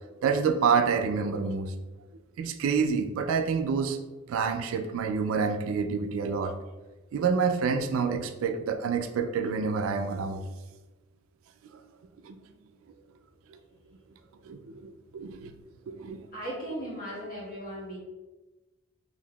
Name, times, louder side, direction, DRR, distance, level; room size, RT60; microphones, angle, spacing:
voice 1, 0.2-1.7 2.4-4.0 4.3-6.6 7.1-10.4 12.2-12.4 13.5-13.6 14.5-15.5 16.0-16.2, right 5 dB, 80° right, 6 dB, 0.3 m, -28 dB
voice 2, 16.3-18.0, equal, 45° left, -6 dB, 1.2 m, -37 dB
3.5 x 2.6 x 2.2 m, 1.1 s
head